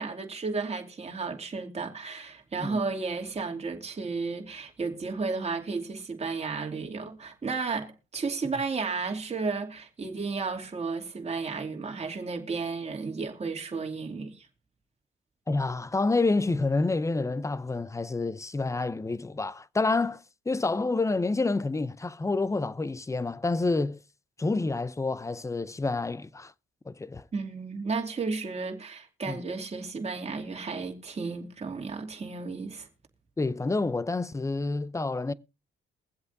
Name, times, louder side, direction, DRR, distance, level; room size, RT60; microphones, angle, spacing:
voice 1, 0.0-14.5 27.3-32.9, right 4 dB, 30° right, 2.7 m, -33 dB
voice 2, 15.5-24.0 24.4-26.5 26.9-27.3 29.3-29.4 33.4-35.3, left 3 dB, 15° left, 0.6 m, -28 dB
22.5 x 7.9 x 2.7 m
cardioid pair, 90°, 20 cm